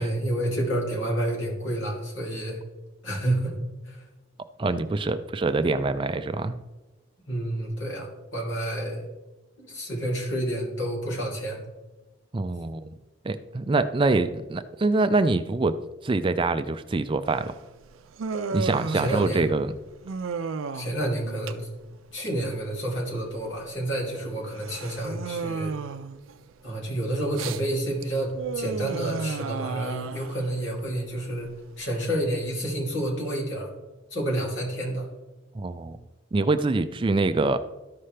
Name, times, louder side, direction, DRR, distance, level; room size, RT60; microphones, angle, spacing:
voice 1, 0.0-2.6 3.0-3.6 3.8-4.0 7.3-9.0 9.6-11.6 18.9-19.5 20.7-21.7 22.1-25.7 26.6-31.5 31.8-33.7 34.1-35.1, right 1 dB, 70° left, -3 dB, 3.0 m, -29 dB
voice 2, 4.6-6.6 12.3-12.9 13.3-15.7 16.0-17.5 18.5-19.7 35.6-36.0 36.3-37.6, right 3 dB, 25° right, 11 dB, 0.3 m, -25 dB
Human voice, 17.3-32.5, right 4 dB, 85° right, 0.5 m, -35 dB
13.5 x 5.6 x 3.3 m, 1.1 s
head